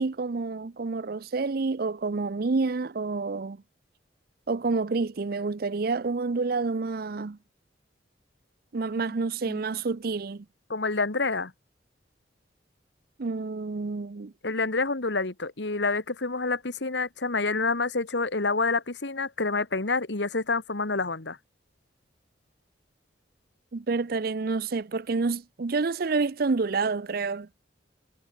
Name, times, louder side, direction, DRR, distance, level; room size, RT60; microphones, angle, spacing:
voice 1, 0.0-3.6 4.5-7.4 8.7-10.5 13.2-14.3 23.7-27.5, right 4 dB, 55° right, 0.5 m, -28 dB
voice 2, 10.7-11.5 14.4-21.4, left 3 dB, 70° left, 1.7 m, -28 dB
head